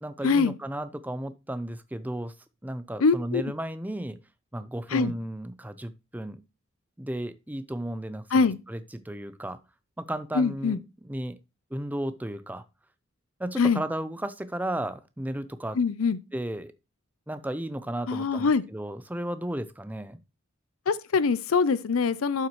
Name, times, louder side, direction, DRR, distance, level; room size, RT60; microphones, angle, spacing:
voice 1, 0.0-2.3 2.6-4.2 4.5-6.4 7.0-9.6 10.0-11.4 11.7-12.6 13.4-15.8 16.3-16.7 17.3-20.2, right 1 dB, 10° right, 0.5 m, -34 dB
voice 2, 3.0-3.4 4.9-5.1 8.3-8.6 10.3-10.8 13.6-13.8 15.8-16.2 18.1-18.6 20.9-22.5, left 4 dB, 85° left, 0.5 m, -23 dB
11.5 x 5.8 x 3.1 m
head